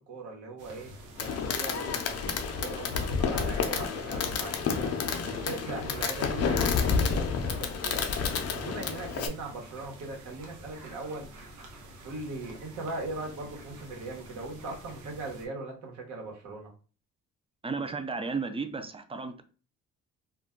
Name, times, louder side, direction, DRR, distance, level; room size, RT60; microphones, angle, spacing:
voice 1, 0.1-0.9 1.2-2.0 2.2-4.9 5.2-11.4 12.0-16.7, right 2 dB, 70° right, 0 dB, 1.2 m, -40 dB
sound 1, 0.6-15.5, right 1 dB, 90° right, 0.8 m, -48 dB
Fireworks, 1.2-9.3, left 5 dB, 55° left, 0.6 m, -30 dB
voice 2, 17.6-19.4, right 4 dB, 20° right, 8 dB, 0.4 m, -33 dB
2.5 x 2.2 x 3.6 m, 0.38 s
cardioid pair, 90°, 30 cm